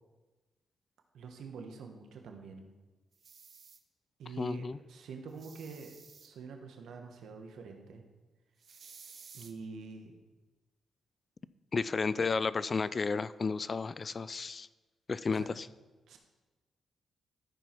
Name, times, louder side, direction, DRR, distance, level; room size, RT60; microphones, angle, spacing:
voice 1, 1.1-2.7 4.2-5.9 6.2-8.0 9.3-10.1 12.2-12.3 15.3-15.5 16.1-16.2, right 4 dB, 80° right, 4 dB, 1.2 m, -46 dB
sound 1, 3.1-3.8 5.3-6.3 8.6-9.5, right 5 dB, 55° right, 0.8 m, -54 dB
voice 2, 4.4-4.8 11.7-14.7 15.1-15.7, left 4 dB, 40° left, 17 dB, 0.3 m, -32 dB
13.5 x 4.6 x 4.5 m, 1.2 s
cardioid pair, 90°, 0 cm